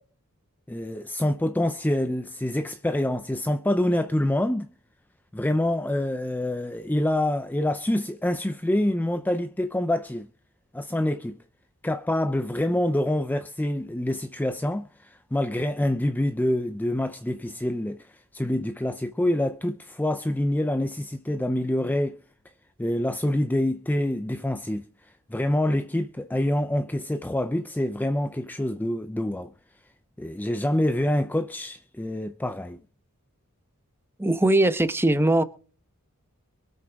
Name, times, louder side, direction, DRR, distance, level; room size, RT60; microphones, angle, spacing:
voice 1, 0.7-4.7 5.3-10.3 10.7-11.4 11.8-22.2 22.8-29.5 30.2-32.8, left 1 dB, 10° left, 0.5 m, -26 dB
voice 2, 34.2-35.4, right 1 dB, 10° right, 0.9 m, -20 dB
23.5 x 7.9 x 3.5 m
head